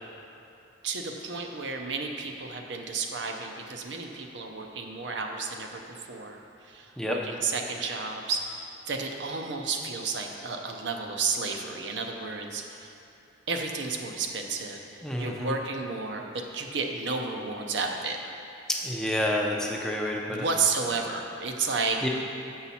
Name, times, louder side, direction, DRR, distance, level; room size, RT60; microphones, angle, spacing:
voice 1, 0.8-12.9 13.5-16.2 16.5-18.2 20.3-22.1, right 4 dB, 65° right, 3 dB, 0.6 m, -32 dB
voice 2, 15.0-15.5 18.8-20.5 22.0-22.1, left 1 dB, 5° left, -1 dB, 0.5 m, -29 dB
7.1 x 5.6 x 4.2 m, 2.9 s
head